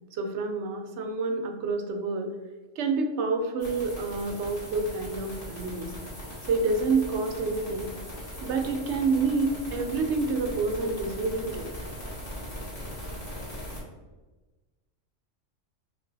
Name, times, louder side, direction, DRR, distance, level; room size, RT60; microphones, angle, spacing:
voice 1, 0.1-2.3 2.8-5.9 6.5-7.9 8.4-11.7, right 3 dB, 70° right, 5 dB, 0.9 m, -28 dB
sound 1, 3.6-13.8, equal, 45° left, 1.6 m, -39 dB
3.3 x 3.3 x 3.9 m, 1.2 s
omnidirectional pair, 1.3 m